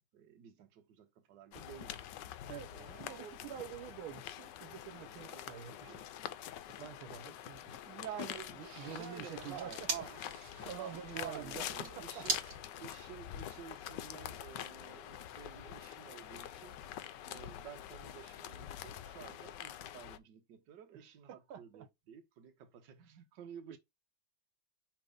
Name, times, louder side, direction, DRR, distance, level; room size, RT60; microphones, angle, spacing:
voice 1, 0.0-2.0 2.7-3.6 5.2-6.1 7.9-10.2 10.7-12.4 12.8-16.9 17.2-23.8, right 9 dB, 60° right, 1.6 m, -51 dB
sound 1, 1.5-20.2, left 11 dB, 70° left, 1.1 m, -46 dB
voice 2, 2.5-5.9 6.7-7.8 8.6-9.7 10.6-11.7 12.0-12.2 21.3-21.9 23.7-23.8, right 9 dB, 85° right, 1.7 m, -47 dB
sound 2, 8.6-13.7, right 4 dB, 45° right, 1.8 m, -43 dB
5.8 x 3.3 x 5.0 m
omnidirectional pair, 2.3 m